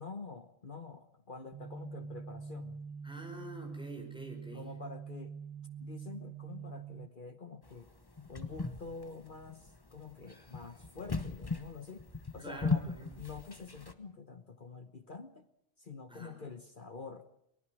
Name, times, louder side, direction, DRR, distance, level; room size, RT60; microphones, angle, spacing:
voice 1, 0.0-2.8 4.5-5.3 5.8-8.0 8.3-12.1 12.3-12.8 13.2-15.5 15.8-17.3, left 4 dB, 45° left, 9 dB, 1.1 m, -47 dB
sound 1, 1.5-7.1, right 6 dB, 20° right, 0.8 m, -45 dB
voice 2, 3.0-4.7 12.4-13.1 16.1-16.3, right 1 dB, 5° right, 2 dB, 4.8 m, -46 dB
sound 2, 7.7-13.9, left 3 dB, 20° left, 1.1 m, -38 dB
23.5 x 19.0 x 6.1 m, 0.74 s
omnidirectional pair, 1.3 m